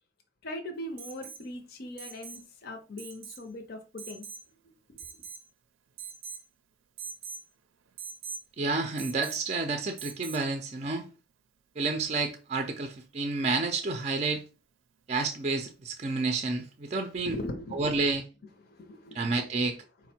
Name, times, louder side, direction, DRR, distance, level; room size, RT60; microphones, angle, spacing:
voice 1, 0.4-4.3 4.9-5.0 17.2-17.8 18.6-19.4, left 1 dB, 50° left, 0.6 m, -40 dB
Alarm, 1.0-1.4 2.0-2.5 3.0-3.4 4.0-4.5 5.0-5.5 6.0-6.5 7.0-7.4 8.0-8.5 9.0-9.5 10.0-10.5 12.2-12.3, right 6 dB, 90° right, 0.5 m, -42 dB
voice 2, 8.6-11.1 11.8-14.4 15.1-17.4 17.7-18.2 19.1-19.8, right 3 dB, 35° right, 0.4 m, -30 dB
5.0 x 2.1 x 4.3 m
head